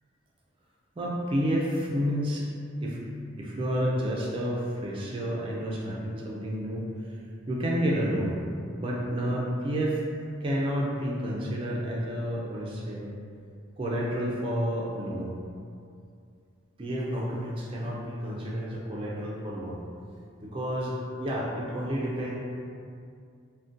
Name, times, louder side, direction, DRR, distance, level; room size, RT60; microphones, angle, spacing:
voice 1, 1.0-2.4 2.8-6.9 7.5-8.4 8.8-10.0 10.4-13.1 13.8-15.3 16.8-19.8 20.4-22.4, equal, 25° right, -4 dB, 0.3 m, -30 dB
3.7 x 2.1 x 2.6 m, 2.3 s
head